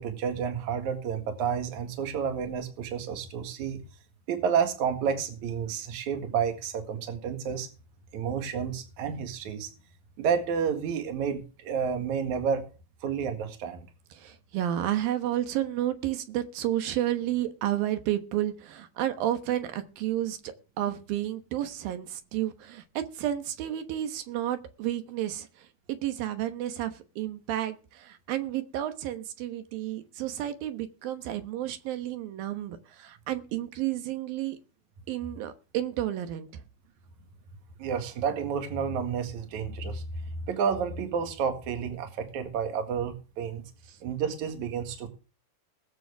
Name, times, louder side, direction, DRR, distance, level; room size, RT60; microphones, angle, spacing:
voice 1, 0.0-3.8 4.3-7.7 8.1-9.7 10.2-12.6 13.0-13.9 37.8-43.7 44.0-45.1, right 7 dB, 55° right, 2.9 m, -30 dB
voice 2, 14.2-25.5 25.9-34.6 35.1-36.6 43.9-44.0, right 12 dB, 70° right, 2.8 m, -31 dB
20.5 x 7.7 x 3.5 m
omnidirectional pair, 4.5 m